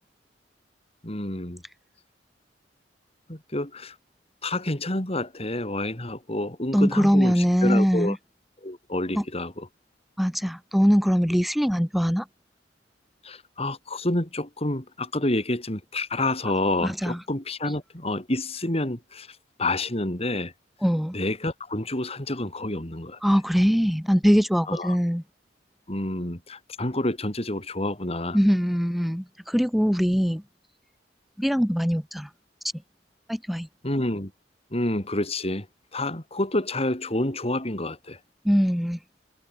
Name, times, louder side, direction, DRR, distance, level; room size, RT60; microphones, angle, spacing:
voice 1, 1.0-1.6 3.3-3.9 4.4-8.2 8.6-9.7 13.2-20.5 21.1-23.2 24.7-25.0 25.9-28.4 33.8-34.3 34.7-35.7 35.9-38.2, left 1 dB, 35° left, 3.5 m, -28 dB
voice 2, 6.7-8.2 9.1-9.2 10.2-12.2 16.8-17.2 20.8-21.1 23.2-25.2 28.3-30.4 31.4-32.3 33.3-33.7 38.4-39.0, equal, ahead, 1.9 m, -22 dB
head